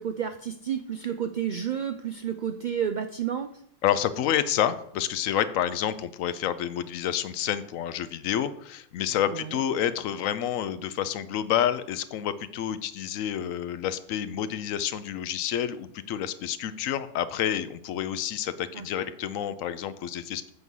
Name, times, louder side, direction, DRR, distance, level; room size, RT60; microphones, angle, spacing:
voice 1, 0.0-3.5 9.3-9.6 18.7-18.9, right 8 dB, 70° right, 8 dB, 0.4 m, -31 dB
voice 2, 3.8-20.5, left 10 dB, 85° left, 13 dB, 1.0 m, -29 dB
8.2 x 4.7 x 5.4 m, 0.70 s
omnidirectional pair, 1.3 m